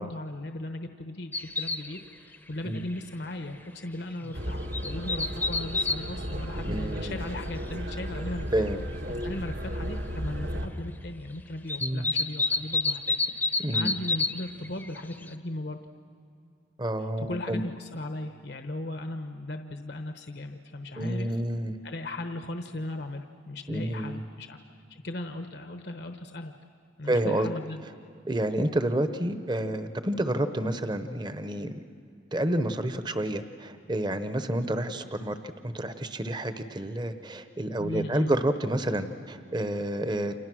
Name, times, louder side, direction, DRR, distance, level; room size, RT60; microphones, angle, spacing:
voice 1, 0.0-8.4 9.2-15.8 17.2-21.4 21.8-24.6 24.9-26.5 27.0-27.8 37.8-38.3, left 1 dB, 60° left, 6 dB, 1.0 m, -37 dB
sound 1, 1.3-2.0 2.3-2.4 2.8-3.0 3.4-3.5 4.4-6.0 6.7-6.8 8.0-8.1 8.7-8.8 9.0-9.4 11.7-14.4 14.6-15.3, left 3 dB, 10° left, 0.8 m, -28 dB
sound 2, 4.3-10.7, equal, 70° right, 2.0 m, -34 dB
voice 2, 6.6-7.1 8.5-8.8 11.8-12.1 13.6-14.0 16.8-17.6 21.0-21.7 23.7-24.2 27.1-27.5 28.3-31.7 32.3-35.4 35.6-40.3, right 1 dB, 25° right, 10 dB, 0.9 m, -29 dB
30.0 x 27.0 x 6.3 m, 2.5 s
head